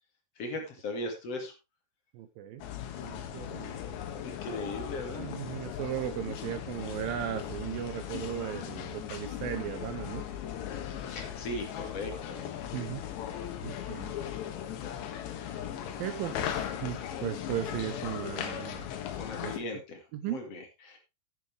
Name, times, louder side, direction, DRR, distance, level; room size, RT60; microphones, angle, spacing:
voice 1, 0.4-1.5 4.2-5.3 11.0-12.6 13.9-14.3 19.2-20.0 20.3-21.0, left 2 dB, 45° left, 4 dB, 2.5 m, -38 dB
voice 2, 2.1-2.7 3.0-3.8 5.2-10.3 12.7-13.0 13.6-14.1 16.0-18.9 19.4-19.6 20.1-20.4, right 11 dB, 85° right, 10 dB, 2.0 m, -36 dB
sound 1, 2.6-19.6, left 10 dB, 80° left, 3.5 m, -38 dB
10.5 x 10.5 x 3.4 m, 0.26 s
omnidirectional pair, 5.2 m